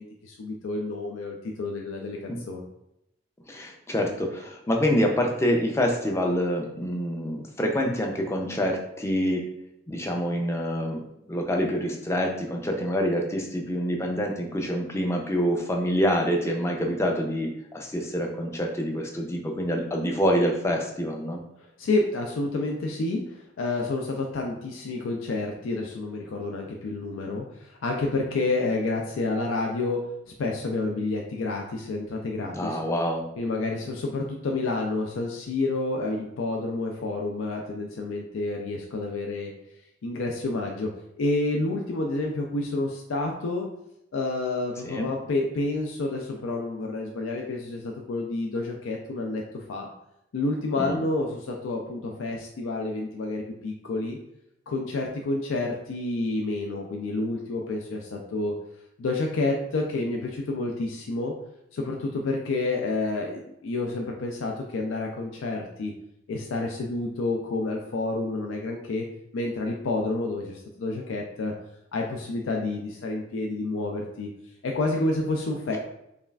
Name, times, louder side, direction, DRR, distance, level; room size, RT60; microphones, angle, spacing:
voice 1, 0.0-2.7 21.6-30.0 30.3-32.8 33.4-39.5 40.0-40.9 41.2-43.7 44.1-49.9 50.3-54.2 54.7-58.5 59.0-61.3 61.7-65.9 66.3-69.0 69.3-71.5 71.9-74.3 74.6-75.8, left 2 dB, 80° left, 1 dB, 0.4 m, -29 dB
voice 2, 3.5-9.5 9.9-11.0 11.3-21.4 32.5-33.2 44.8-45.1 50.8-51.0, equal, 15° left, 1 dB, 0.4 m, -26 dB
5.3 x 2.3 x 2.3 m, 0.82 s
head